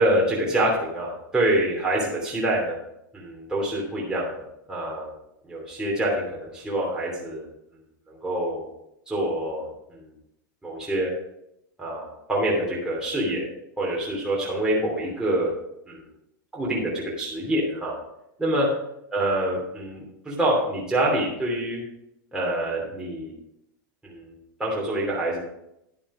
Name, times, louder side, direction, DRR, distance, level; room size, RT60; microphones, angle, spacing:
voice 1, 0.0-2.8 3.1-5.1 5.4-7.5 8.1-8.7 9.1-10.1 10.6-11.1 11.8-13.5 13.8-15.5 15.9-16.0 16.5-18.0 18.4-18.7 19.1-21.8 22.3-23.3 24.0-24.3 24.6-25.4, right 1 dB, 5° right, -5 dB, 3.0 m, -26 dB
11.0 x 7.1 x 5.0 m, 0.81 s
hypercardioid pair, 115°, 11 cm